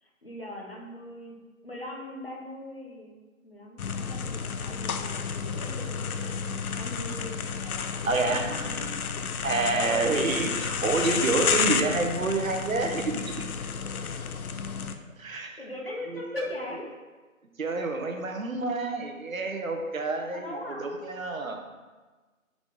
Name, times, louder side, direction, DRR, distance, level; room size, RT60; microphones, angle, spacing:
voice 1, 0.0-1.4 1.6-3.1 3.4-8.9 9.7-10.1 10.5-10.6 15.6-16.9 20.3-21.2, left 1 dB, 45° left, -2 dB, 0.8 m, -40 dB
sound 1, 3.8-15.0, left 6 dB, 90° left, 0.5 m, -31 dB
voice 2, 8.0-8.7 9.4-13.3 15.2-15.6 16.1-16.2 17.6-21.6, right 3 dB, 70° right, 4 dB, 0.7 m, -28 dB
3.7 x 3.5 x 3.8 m, 1.3 s
figure-of-eight pair, 175°, 42 cm